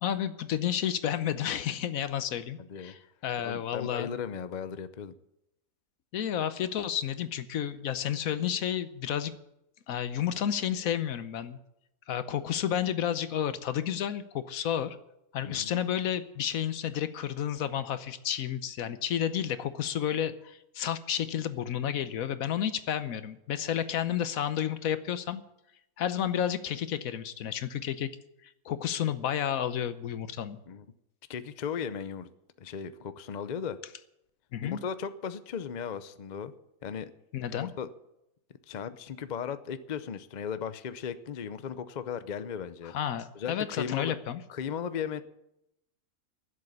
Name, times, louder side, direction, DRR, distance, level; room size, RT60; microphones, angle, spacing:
voice 1, 0.0-4.1 6.1-9.3 9.9-11.6 12.1-15.0 15.3-25.4 26.0-28.1 28.7-30.6 34.5-34.8 37.3-37.7 42.8-44.4, left 9 dB, 70° left, 13 dB, 1.2 m, -31 dB
voice 2, 2.6-2.9 3.4-5.1 15.4-15.7 30.7-30.9 31.3-32.3 32.6-33.8 34.6-36.5 36.8-37.1 37.5-37.9 38.7-42.9 43.3-44.1 44.5-45.2, left 7 dB, 45° left, 12 dB, 0.6 m, -36 dB
12.0 x 7.7 x 9.8 m, 0.84 s
omnidirectional pair, 1.5 m